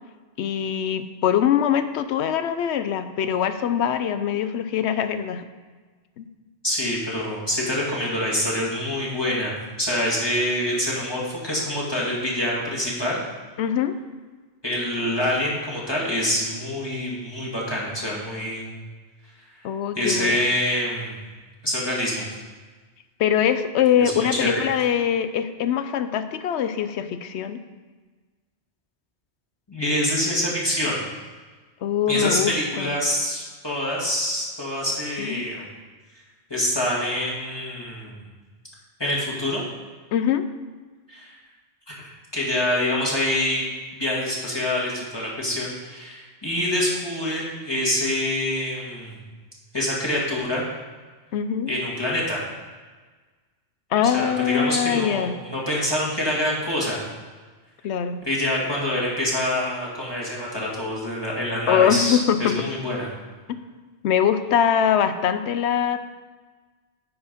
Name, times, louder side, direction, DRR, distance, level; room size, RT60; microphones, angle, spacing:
voice 1, 0.4-5.4 6.2-6.3 13.6-14.0 19.6-20.4 23.2-27.6 31.8-32.9 35.2-35.4 40.1-40.4 51.3-51.7 53.9-55.3 57.8-58.2 61.7-62.5 64.0-66.0, left 9 dB, 90° left, 10 dB, 0.9 m, -23 dB
voice 2, 6.6-13.2 14.6-18.7 20.0-21.1 21.6-22.4 24.0-24.5 29.7-31.0 32.1-35.6 36.5-38.2 39.0-39.6 41.1-41.4 41.9-43.7 43.9-49.2 49.7-50.6 51.7-52.4 54.1-57.0 58.2-63.1, left 1 dB, 25° left, -5 dB, 1.8 m, -26 dB
10.0 x 4.5 x 5.2 m, 1.4 s
omnidirectional pair, 1.1 m